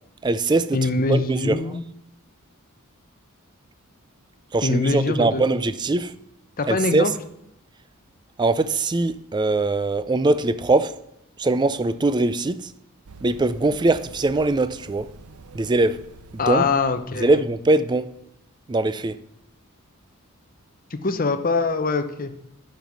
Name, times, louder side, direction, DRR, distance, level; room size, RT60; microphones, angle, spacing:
voice 1, 0.2-1.8 4.5-6.1 6.7-7.1 8.4-11.1 11.4-12.7 13.2-15.1 15.5-16.1 16.5-16.6 17.2-18.1 18.7-19.2, right 2 dB, 20° right, 0.3 m, -22 dB
voice 2, 0.7-1.8 4.6-5.5 6.6-7.1 16.4-17.4 20.9-22.3, left 3 dB, 40° left, 0.7 m, -23 dB
Run, 13.1-17.8, right 3 dB, 80° right, 0.7 m, -46 dB
9.2 x 5.4 x 6.1 m
head